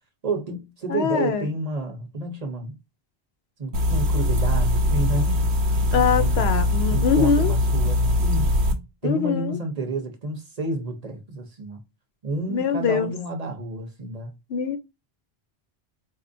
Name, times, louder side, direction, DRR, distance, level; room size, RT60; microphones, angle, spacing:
voice 1, 0.2-2.7 3.6-5.5 5.9-6.5 6.9-8.5 9.0-11.8 12.2-14.3, right 2 dB, 40° right, 0.8 m, -30 dB
voice 2, 0.9-1.5 5.9-7.5 9.0-9.6 12.5-13.1 14.5-14.8, left 6 dB, 75° left, 0.8 m, -23 dB
sound 1, 3.7-8.7, left 1 dB, 85° right, 1.0 m, -21 dB
4.2 x 2.4 x 2.6 m
omnidirectional pair, 1.1 m